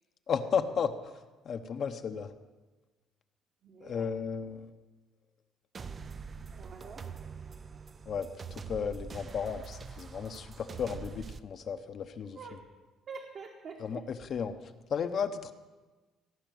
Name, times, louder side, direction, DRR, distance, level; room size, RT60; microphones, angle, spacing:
voice 1, 0.3-2.3 3.8-4.7 8.1-12.4 13.8-15.5, left 6 dB, 45° left, 8 dB, 0.9 m, -34 dB
voice 2, 3.6-4.1 6.5-7.0 12.3-12.6 13.1-14.0, right 5 dB, 45° right, 1 dB, 1.5 m, -46 dB
sound 1, 5.7-11.4, right 5 dB, 30° right, 0.5 m, -44 dB
17.0 x 5.9 x 9.3 m, 1.2 s
cardioid pair, 125°, 0 cm